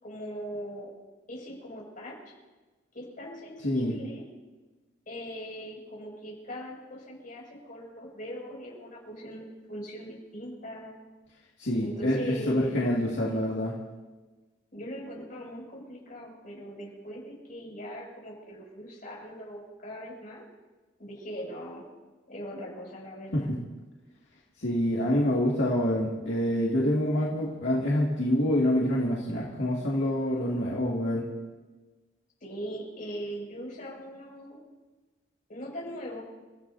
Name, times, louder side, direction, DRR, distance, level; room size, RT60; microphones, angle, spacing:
voice 1, 0.0-0.9 1.3-2.3 2.9-4.2 5.1-11.0 11.8-12.8 14.7-20.4 21.0-21.9 22.3-23.5 32.4-34.6 35.5-36.2, equal, 45° left, -3 dB, 6.7 m, -40 dB
voice 2, 3.6-4.0 11.6-13.7 23.3-23.5 24.6-31.2, left 1 dB, 70° left, -5 dB, 2.3 m, -26 dB
30.0 x 15.0 x 2.8 m, 1.2 s
head